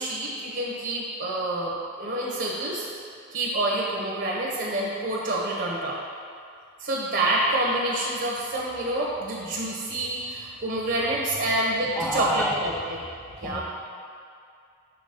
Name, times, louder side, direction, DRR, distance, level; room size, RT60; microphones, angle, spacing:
voice 1, 0.0-2.9 3.3-6.0 6.8-13.0 13.4-13.6, right 1 dB, 60° right, -4 dB, 0.9 m, -27 dB
voice 2, 12.0-12.7 13.4-13.6, equal, 5° left, 1 dB, 0.4 m, -28 dB
6.9 x 3.7 x 5.2 m, 2.3 s
head